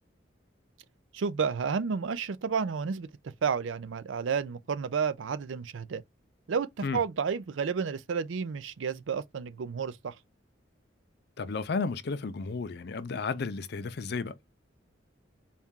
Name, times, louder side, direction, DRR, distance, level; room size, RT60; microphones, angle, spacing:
voice 1, 1.1-6.0 6.5-10.1, right 6 dB, 90° right, 0.4 m, -31 dB
voice 2, 11.4-14.4, left 4 dB, 60° left, 0.5 m, -33 dB
4.2 x 2.3 x 3.6 m
head